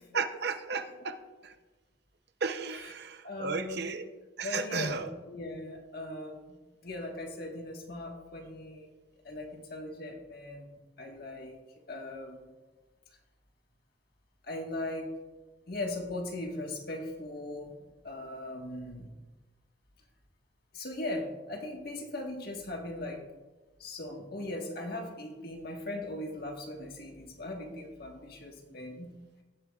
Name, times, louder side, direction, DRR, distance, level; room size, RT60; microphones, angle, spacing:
voice 1, 0.0-1.5 2.4-4.1 4.4-5.1, right 5 dB, 60° right, 9 dB, 0.6 m, -34 dB
voice 2, 3.2-3.9 4.4-8.9 9.2-11.6 11.9-12.5 14.4-15.1 15.7-17.8 18.0-19.1 20.7-23.2 23.8-29.1, left 2 dB, 55° left, 2 dB, 1.5 m, -39 dB
17.0 x 7.7 x 2.4 m, 1.2 s
head